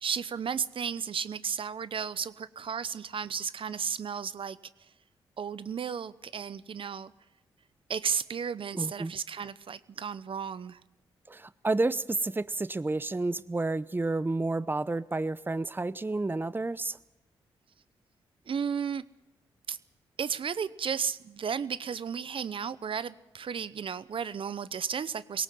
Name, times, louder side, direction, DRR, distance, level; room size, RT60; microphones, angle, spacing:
voice 1, 0.0-4.6 5.4-7.1 7.9-10.8 18.5-19.0 19.7-19.8 20.2-25.4, right 7 dB, 60° right, 16 dB, 0.9 m, -33 dB
voice 2, 8.7-9.1 11.3-17.0, right 2 dB, 20° right, 17 dB, 0.8 m, -30 dB
21.0 x 18.0 x 7.7 m, 0.93 s
supercardioid pair, 50°, 10 cm